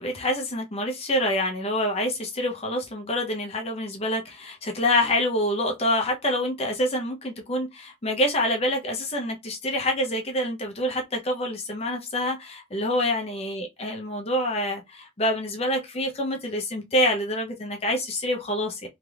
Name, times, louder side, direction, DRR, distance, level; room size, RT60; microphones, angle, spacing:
voice 1, 0.0-18.9, left 1 dB, 35° left, 0.7 m, -26 dB
3.4 x 2.9 x 2.4 m
head